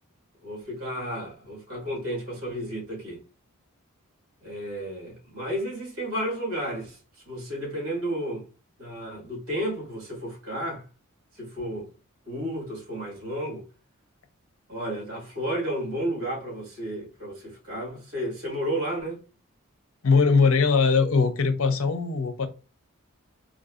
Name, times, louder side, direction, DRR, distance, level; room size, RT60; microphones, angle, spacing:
voice 1, 0.4-3.2 4.4-7.0 7.3-8.5 8.8-10.8 11.3-11.9 12.2-13.6 14.7-19.2, right 1 dB, 80° right, 1.7 m, -32 dB
voice 2, 20.0-22.5, left 4 dB, 70° left, 0.6 m, -21 dB
3.5 x 2.6 x 2.4 m
head